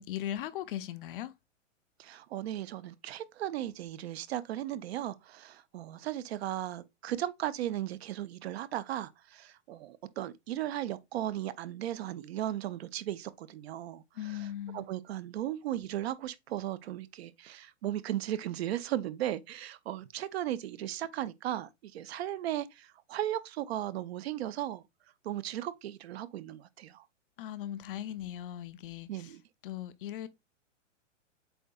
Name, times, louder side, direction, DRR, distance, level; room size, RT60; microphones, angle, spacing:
voice 1, 0.0-1.3 14.2-14.9 27.4-29.3 29.6-30.3, left 11 dB, 45° left, 0.5 m, -38 dB
voice 2, 2.0-24.8 25.2-27.1 29.1-29.4, right 12 dB, 55° right, 0.6 m, -36 dB
7.7 x 2.7 x 2.3 m
hypercardioid pair, 130°, 38 cm